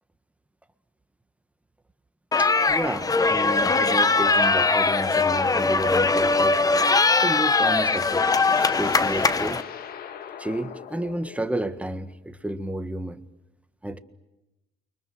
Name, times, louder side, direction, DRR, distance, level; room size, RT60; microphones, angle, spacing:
sound 1, 2.3-9.6, left 3 dB, 20° left, 1.0 m, -21 dB
voice 1, 2.4-6.6 7.2-8.3 8.8-9.6 10.4-13.2 13.8-14.0, right 1 dB, 10° right, 1.6 m, -31 dB
sound 2, 7.0-12.0, left 8 dB, 60° left, 1.9 m, -41 dB
29.5 x 24.0 x 7.9 m
cardioid pair, 110°, 17 cm